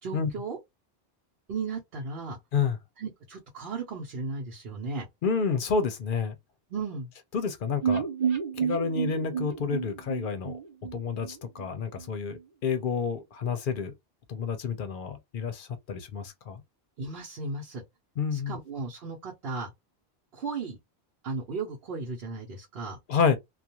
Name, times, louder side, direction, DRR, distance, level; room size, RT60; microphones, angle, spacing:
voice 1, 0.0-0.6 1.5-2.4 3.0-5.1 6.7-7.1 17.0-17.8 18.3-19.7 20.3-20.8 21.2-23.0, right 4 dB, 70° right, 1.0 m, -35 dB
voice 2, 5.2-6.4 7.3-8.1 8.5-10.5 10.9-13.9 14.3-16.6 18.2-18.6 23.1-23.4, left 5 dB, 60° left, 0.7 m, -29 dB
sound 1, 7.8-11.7 12.0-12.1 12.4-12.5, right 7 dB, 45° right, 0.7 m, -30 dB
2.3 x 2.2 x 2.7 m
omnidirectional pair, 1.1 m